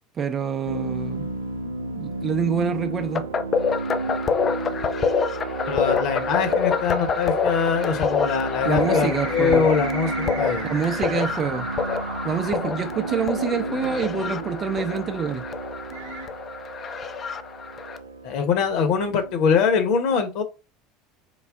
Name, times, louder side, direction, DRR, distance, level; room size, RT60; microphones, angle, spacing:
voice 1, 0.2-1.3 1.8-3.2 8.6-9.7 10.6-11.7 12.2-15.4, right 6 dB, 35° right, 0.6 m, -26 dB
sound 1, 0.6-19.4, right 3 dB, 90° right, 0.5 m, -32 dB
sound 2, 3.1-18.0, left 6 dB, 35° left, 0.4 m, -27 dB
voice 2, 5.7-10.7 18.2-20.4, left 6 dB, 55° left, 0.9 m, -23 dB
sound 3, 8.5-14.5 15.3-15.4 15.9-16.3, right 4 dB, 65° right, 0.9 m, -37 dB
3.9 x 2.0 x 3.6 m
figure-of-eight pair, 70°, 0 cm